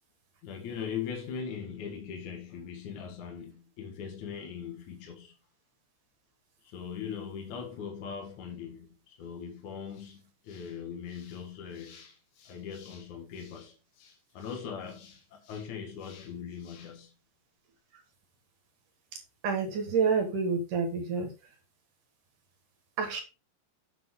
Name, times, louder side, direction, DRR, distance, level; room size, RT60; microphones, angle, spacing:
voice 1, 0.4-5.3 6.6-17.1, left 7 dB, 55° left, 2.5 m, -40 dB
voice 2, 19.4-21.3 23.0-23.2, right 5 dB, 55° right, 2.7 m, -28 dB
8.0 x 7.1 x 3.7 m
omnidirectional pair, 5.0 m